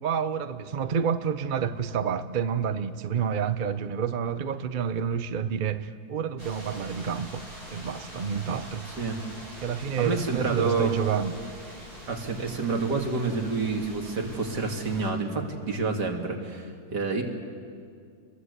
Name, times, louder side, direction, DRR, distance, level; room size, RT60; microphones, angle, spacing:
voice 1, 0.0-7.4 7.7-8.9 9.6-11.4, right 7 dB, 40° right, 11 dB, 0.8 m, -29 dB
sound 1, 6.4-15.1, equal, 65° right, 7.6 m, -44 dB
voice 2, 10.0-11.0 12.1-17.2, right 4 dB, 90° right, 2 dB, 3.1 m, -28 dB
28.5 x 21.5 x 8.2 m, 2.2 s
omnidirectional pair, 1.7 m